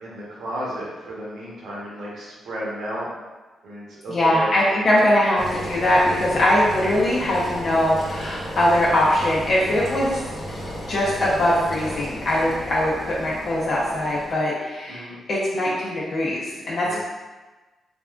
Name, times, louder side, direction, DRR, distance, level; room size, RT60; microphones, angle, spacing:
voice 1, 0.0-3.1 3.6-5.0 12.3-12.6 14.9-15.2 16.8-17.0, right 1 dB, 80° right, -6 dB, 0.9 m, -33 dB
voice 2, 4.1-10.2 10.7-17.0, left 1 dB, 55° left, -7 dB, 0.6 m, -21 dB
Engine, 5.4-14.4, equal, 30° left, 1.0 m, -34 dB
3.4 x 2.2 x 2.4 m, 1.2 s
cardioid pair, 75°, 0 cm